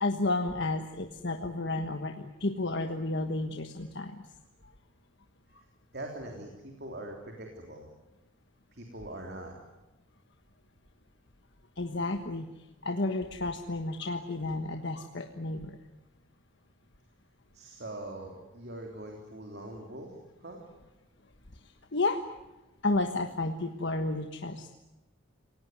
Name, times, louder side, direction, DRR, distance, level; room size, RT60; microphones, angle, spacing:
voice 1, 0.0-4.2 11.8-12.5 12.8-15.8 21.9-22.2 22.8-24.7, left 2 dB, 55° left, 5 dB, 1.4 m, -31 dB
voice 2, 5.9-7.9 8.7-9.5 17.5-20.6, right 1 dB, 50° right, 2 dB, 3.5 m, -42 dB
28.5 x 18.5 x 9.4 m, 1.1 s
head